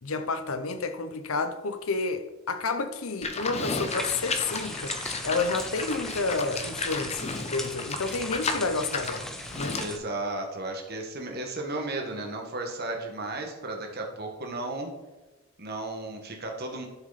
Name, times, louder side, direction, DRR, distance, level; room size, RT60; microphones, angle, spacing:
voice 1, 0.0-9.8, left 3 dB, 65° left, 0.7 m, -30 dB
Livestock farm animals working animals, 3.2-10.0, left 4 dB, 30° left, 0.9 m, -34 dB
sound 1, 3.9-10.0, equal, ahead, 0.6 m, -38 dB
voice 2, 9.7-14.9 15.6-16.9, right 2 dB, 45° right, 1.6 m, -34 dB
11.5 x 6.2 x 4.2 m
head